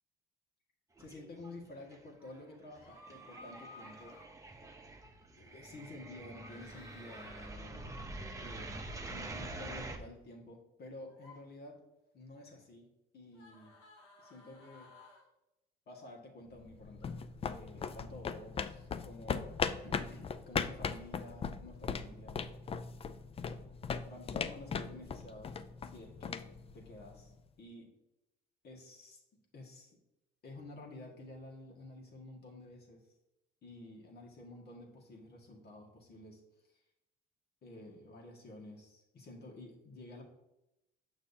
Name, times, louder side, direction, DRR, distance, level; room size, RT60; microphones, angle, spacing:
voice 1, 1.0-4.2 4.4-4.6 5.4-8.0 8.4-11.8 12.1-12.9 13.1-13.7 14.2-14.9 15.9-17.2 17.4-19.5 19.8-22.4 24.0-26.5 26.7-27.3 27.6-27.9 28.6-29.2 29.5-30.0 30.4-33.0 33.6-36.4 36.7-36.8 37.6-40.2, left 2 dB, 55° left, 0 dB, 1.9 m, -51 dB
sound 1, 1.0-1.6 1.9-10.0, right 2 dB, 15° right, 0.9 m, -46 dB
sound 2, 2.7-4.3 6.4-7.5 9.2-9.5 11.1-11.4 13.3-15.3 17.0-17.1, left 2 dB, 85° left, 1.7 m, -56 dB
sound 3, 16.6-27.4, left 6 dB, 30° left, 0.4 m, -39 dB
6.6 x 6.0 x 2.8 m, 0.89 s
supercardioid pair, 85°, 20 cm